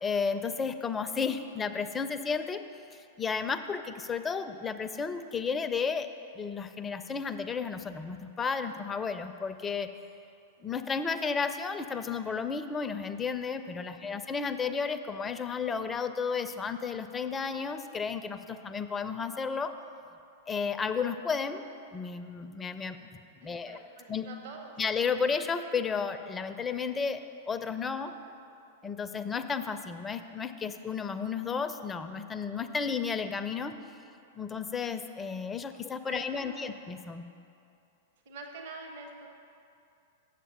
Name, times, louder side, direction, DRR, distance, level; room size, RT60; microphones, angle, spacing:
voice 1, 0.0-2.6 2.9-6.1 6.4-9.9 10.6-19.7 20.5-21.6 21.9-23.1 23.4-23.8 24.1-24.3 24.8-27.2 27.5-28.1 28.8-33.7 34.4-37.3, left 5 dB, 15° left, 9 dB, 0.4 m, -33 dB
voice 2, 13.8-14.2 23.4-24.8 36.0-36.8 38.3-39.3, right 3 dB, 50° right, 2 dB, 0.9 m, -46 dB
8.1 x 7.5 x 5.2 m, 2.6 s
figure-of-eight pair, 95°, 0 cm